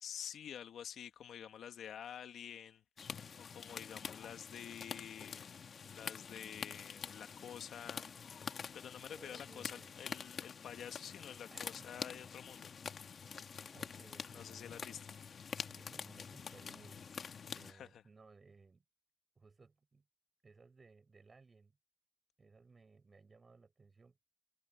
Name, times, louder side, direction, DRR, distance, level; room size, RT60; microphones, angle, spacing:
voice 1, 0.0-2.8 3.4-5.6 5.9-8.5 8.7-12.7 13.7-13.8 14.3-15.0 17.6-18.0, left 9 dB, 65° left, 2.0 m, -49 dB
sound 1, 3.0-17.7, left 6 dB, 45° left, 1.6 m, -47 dB
voice 2, 9.1-9.9 11.5-12.2 13.2-14.9 15.7-18.8 19.4-20.0 20.4-21.8 22.4-24.2, right 4 dB, 30° right, 5.9 m, -61 dB
cardioid pair, 90°, 0 cm